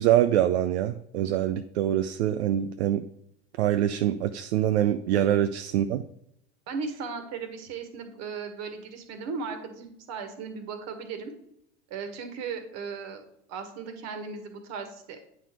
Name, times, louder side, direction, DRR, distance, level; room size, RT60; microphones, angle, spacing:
voice 1, 0.0-3.0 3.6-6.0, right 11 dB, 70° right, 9 dB, 0.5 m, -24 dB
voice 2, 6.7-11.3 11.9-13.2 13.5-15.2, right 5 dB, 50° right, 7 dB, 1.6 m, -36 dB
9.0 x 4.2 x 4.6 m, 0.75 s
hypercardioid pair, 85°, 35 cm